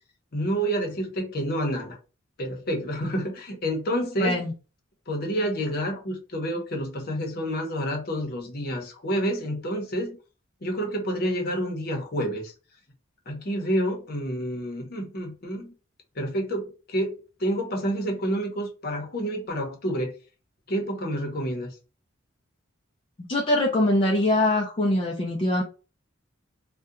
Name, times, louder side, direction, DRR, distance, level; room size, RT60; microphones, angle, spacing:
voice 1, 0.3-2.0 2.4-4.4 5.1-10.1 10.6-12.5 13.3-15.7 16.2-17.1 17.4-20.1 20.7-21.8, equal, 50° left, 0.7 m, -28 dB
voice 2, 4.2-4.5 23.3-25.6, left 1 dB, 25° left, 0.3 m, -23 dB
2.7 x 2.1 x 2.4 m
head